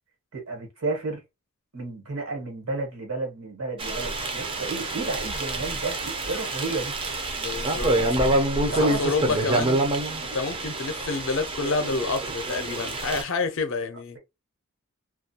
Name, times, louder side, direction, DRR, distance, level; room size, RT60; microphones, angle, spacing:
voice 1, 0.3-1.2 1.7-7.0 8.7-9.0, right 3 dB, 75° right, 1.2 m, -32 dB
sound 1, 3.8-13.2, right 1 dB, 25° right, 0.4 m, -27 dB
voice 2, 7.3-8.0 8.6-9.8 10.3-14.2, left 3 dB, 60° left, 0.5 m, -28 dB
2.3 x 2.2 x 2.7 m
head